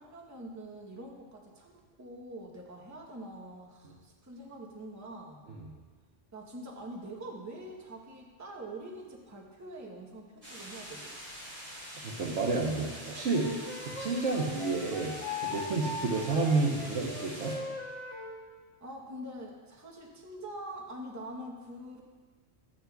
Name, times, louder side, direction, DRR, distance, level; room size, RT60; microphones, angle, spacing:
voice 1, 0.0-5.4 6.3-11.1 18.8-22.0, right 1 dB, 15° right, 0 dB, 0.8 m, -44 dB
sound 1, 10.4-17.6, equal, 40° right, 3.2 m, -45 dB
voice 2, 12.0-15.1 15.4-17.6, right 3 dB, 80° right, -3 dB, 1.2 m, -30 dB
Wind instrument woodwind instrument, 13.3-18.4, left 3 dB, 50° left, 1.4 m, -40 dB
12.5 x 8.5 x 2.3 m, 1.4 s
omnidirectional pair, 1.2 m